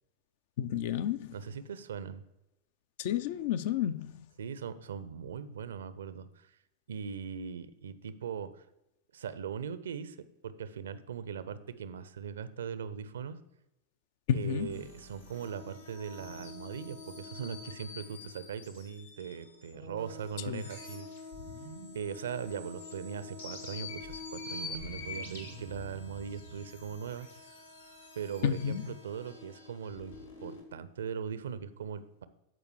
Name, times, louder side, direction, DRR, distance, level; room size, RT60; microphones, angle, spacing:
voice 1, 0.6-1.4 3.0-4.3 14.3-14.8 20.5-20.7 28.4-28.9, left 9 dB, 50° left, 0.4 m, -31 dB
voice 2, 1.3-2.2 4.4-6.5 6.9-8.6 9.1-10.2 10.4-13.4 14.3-21.1 21.9-27.3 28.2-30.2 30.4-32.3, right 7 dB, 65° right, 0.5 m, -40 dB
sound 1, 14.5-30.6, left 3 dB, 75° left, 1.8 m, -46 dB
13.5 x 4.9 x 3.1 m
figure-of-eight pair, 90°, 0 cm